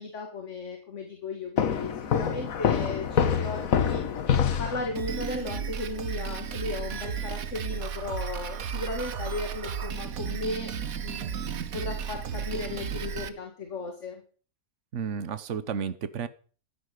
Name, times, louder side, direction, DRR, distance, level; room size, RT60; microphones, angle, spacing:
voice 1, 0.0-4.3 4.6-10.7 11.0-14.2, left 3 dB, 55° left, 3 dB, 2.4 m, -36 dB
sound 1, 1.6-5.3, left 7 dB, 75° left, 1.6 m, -26 dB
Drum kit, 4.9-13.3, right 7 dB, 80° right, 1.5 m, -34 dB
voice 2, 14.9-16.3, right 7 dB, 60° right, 14 dB, 1.4 m, -32 dB
14.5 x 9.8 x 6.7 m, 0.42 s
omnidirectional pair, 1.5 m